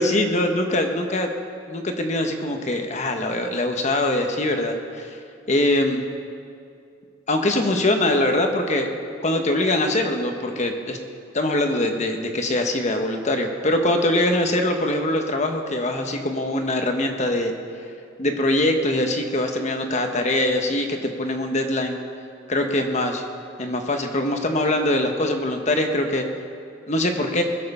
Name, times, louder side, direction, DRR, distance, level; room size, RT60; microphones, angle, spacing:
voice 1, 0.0-1.3 1.7-5.1 5.5-6.0 7.3-8.9 9.2-11.0 11.3-17.5 18.2-22.0 22.5-23.2 23.6-26.2 26.9-27.4, left 1 dB, 40° left, 5 dB, 1.0 m, -23 dB
20.5 x 7.6 x 5.5 m, 2.4 s
head